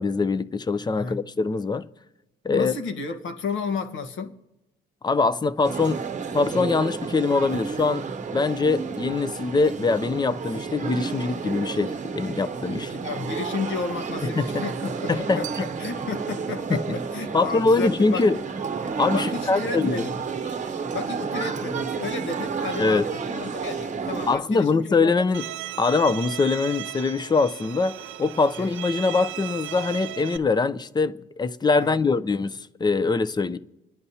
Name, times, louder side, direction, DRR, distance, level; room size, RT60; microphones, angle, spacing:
voice 1, 0.0-1.9 2.4-2.8 5.0-6.0 6.3-8.1 8.3-12.9 14.2-14.5 15.1-15.7 16.7-16.8 17.3-18.4 19.0-20.0 22.8-23.1 24.3-25.5 25.8-33.6, left 4 dB, 20° left, 0.5 m, -23 dB
voice 2, 2.5-4.4 12.8-18.3 19.1-20.4 20.9-25.1 28.6-28.7 31.8-32.0, left 4 dB, 75° left, 1.2 m, -32 dB
sound 1, 5.6-24.4, right 5 dB, 40° right, 0.9 m, -31 dB
Bowed string instrument, 25.3-30.4, right 13 dB, 80° right, 0.7 m, -36 dB
28.5 x 10.5 x 2.8 m
cardioid pair, 90°, 20 cm